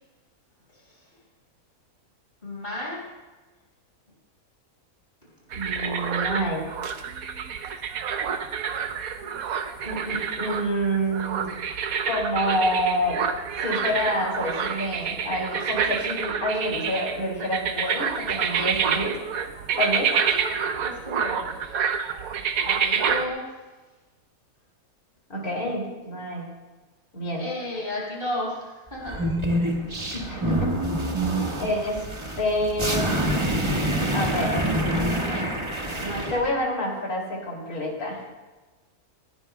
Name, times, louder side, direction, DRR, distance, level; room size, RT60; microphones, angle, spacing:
voice 1, 2.4-3.1 5.7-5.9 20.3-20.5 20.8-21.8 22.6-23.6 27.3-29.2, left 1 dB, 35° left, -6 dB, 5.8 m, -33 dB
voice 2, 5.5-6.6 9.8-11.5 12.0-13.2 13.5-19.1 19.8-20.1 25.3-26.4 27.1-27.4 30.1-30.7 31.6-32.0 32.4-33.1 34.1-34.7 35.9-38.2, equal, 75° left, -2 dB, 3.3 m, -27 dB
sound 1, 5.5-23.3, right 7 dB, 75° right, 1.2 m, -28 dB
sound 2, 29.0-36.4, right 1 dB, 20° right, 1.5 m, -26 dB
20.0 x 17.5 x 2.2 m, 1.2 s
omnidirectional pair, 1.5 m